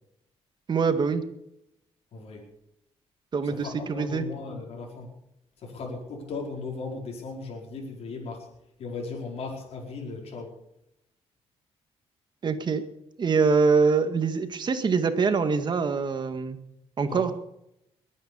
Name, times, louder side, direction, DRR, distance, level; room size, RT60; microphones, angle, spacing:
voice 1, 0.7-1.2 3.3-4.3 12.4-12.8 13.2-16.6 17.0-17.3, right 5 dB, 45° right, 8 dB, 2.0 m, -24 dB
voice 2, 2.1-2.5 3.4-5.1 5.6-8.5 8.8-10.5 17.0-17.3, left 4 dB, 70° left, -1 dB, 4.8 m, -37 dB
21.5 x 9.5 x 7.0 m, 0.81 s
cardioid pair, 110°, 11 cm